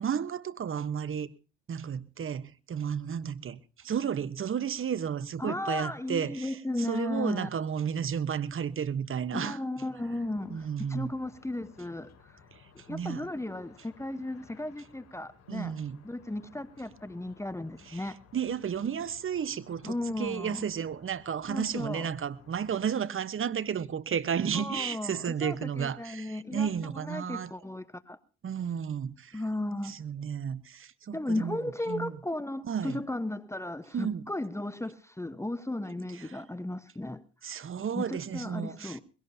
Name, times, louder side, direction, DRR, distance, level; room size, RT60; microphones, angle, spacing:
voice 1, 0.0-1.3 1.7-9.6 10.5-11.1 12.5-12.6 12.9-13.2 15.5-16.0 17.9-27.5 28.4-29.4 29.8-31.6 31.9-32.1 32.7-33.0 33.9-34.3 36.2-36.4 37.4-39.0, right 7 dB, 45° right, 1.1 m, -33 dB
voice 2, 5.4-7.5 9.3-12.3 12.9-15.7 16.0-18.2 19.8-20.6 21.5-22.1 24.5-28.2 29.3-30.0 31.1-37.2 38.0-39.0, left 1 dB, 10° left, 1.0 m, -35 dB
sound 1, 10.0-22.8, left 5 dB, 60° left, 2.9 m, -58 dB
21.5 x 17.0 x 2.8 m
supercardioid pair, 55°, 29 cm